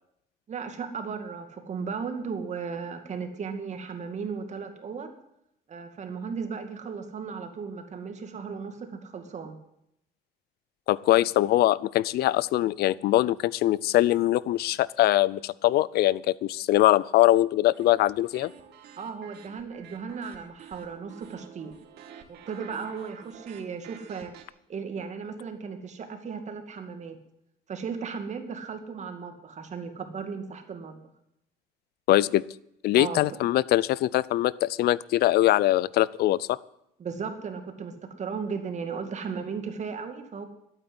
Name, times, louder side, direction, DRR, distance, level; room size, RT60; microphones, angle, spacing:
voice 1, 0.5-5.1 5.7-9.6 19.0-21.7 22.3-24.3 24.7-27.2 27.7-31.0 32.9-33.2 37.0-40.4, right 5 dB, 45° right, 6 dB, 2.3 m, -36 dB
voice 2, 10.9-18.5 32.1-32.4 32.8-36.6, left 15 dB, 70° left, 22 dB, 0.5 m, -22 dB
sound 1, 17.7-24.5, right 8 dB, 75° right, 2.1 m, -50 dB
12.0 x 9.0 x 9.9 m, 0.79 s
cardioid pair, 110°, 17 cm